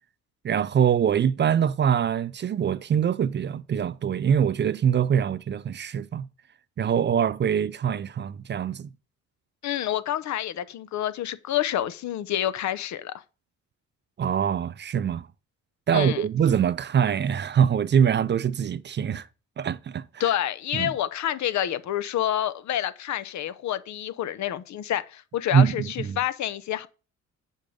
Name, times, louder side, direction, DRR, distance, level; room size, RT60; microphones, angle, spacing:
voice 1, 0.4-6.3 6.8-8.9 14.2-15.3 15.9-19.3 19.6-20.2 20.7-20.9 25.5-26.2, right 8 dB, 35° right, 0.5 m, -24 dB
voice 2, 9.6-13.1 15.9-16.2 20.2-26.9, left 11 dB, 65° left, 0.7 m, -28 dB
7.1 x 5.3 x 5.1 m
cardioid pair, 90°, 30 cm